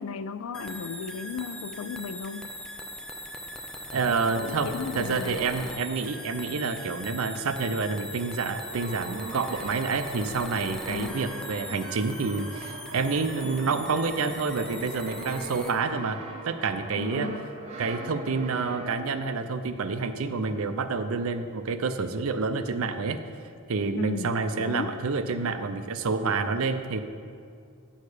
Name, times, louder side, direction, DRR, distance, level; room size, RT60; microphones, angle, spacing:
voice 1, 0.0-2.5 4.4-5.5 10.9-11.3 16.9-17.5 23.9-25.0, left 5 dB, 65° left, 14 dB, 0.4 m, -35 dB
sound 1, 0.5-15.7, left 1 dB, 5° left, 0.4 m, -40 dB
voice 2, 3.9-16.2 16.4-17.3 17.8-23.2 23.7-27.0, right 4 dB, 70° right, 9 dB, 0.5 m, -28 dB
Brass instrument, 8.5-19.4, right 2 dB, 30° right, 0.9 m, -42 dB
9.5 x 6.5 x 4.9 m, 2.3 s
head